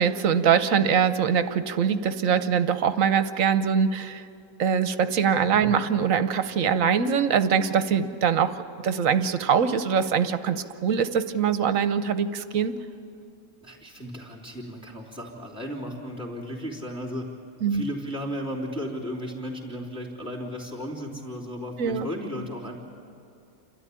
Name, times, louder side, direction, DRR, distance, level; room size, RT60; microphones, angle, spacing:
voice 1, 0.0-4.2 4.6-8.6 8.8-12.8 17.6-17.8 21.8-22.1, right 7 dB, 70° right, 11 dB, 1.2 m, -23 dB
voice 2, 13.6-17.3 17.6-22.8, equal, 5° right, -4 dB, 3.2 m, -35 dB
29.5 x 13.0 x 10.0 m, 2.5 s
omnidirectional pair, 1.5 m